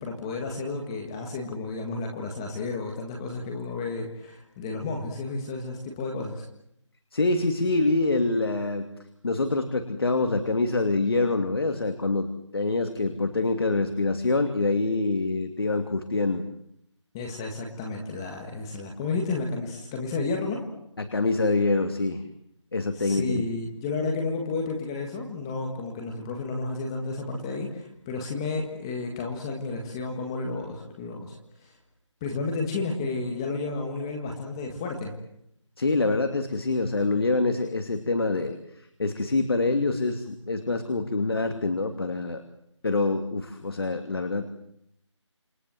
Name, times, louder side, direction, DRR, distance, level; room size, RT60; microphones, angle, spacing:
voice 1, 0.0-6.5 17.1-20.6 22.9-31.4 31.6-31.7 32.2-35.1, left 3 dB, 10° left, 1 dB, 1.7 m, -32 dB
voice 2, 7.1-8.9 9.2-12.3 12.5-16.4 21.0-22.2 22.7-23.4 35.8-42.4 42.8-44.4, left 3 dB, 50° left, 7 dB, 2.6 m, -25 dB
28.0 x 26.0 x 7.7 m, 0.76 s
figure-of-eight pair, 175°, 16 cm